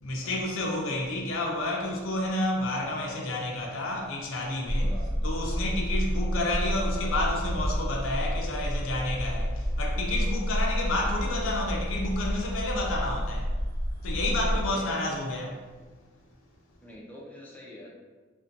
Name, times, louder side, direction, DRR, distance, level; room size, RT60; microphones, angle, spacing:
voice 1, 0.0-4.9 5.2-13.5 14.0-15.7, left 1 dB, 85° left, 0.5 m, -30 dB
sound 1, 4.7-14.7, equal, 60° right, 0.9 m, -29 dB
voice 2, 14.5-15.1 16.8-17.9, left 1 dB, 10° left, 0.4 m, -45 dB
2.5 x 2.1 x 2.5 m
head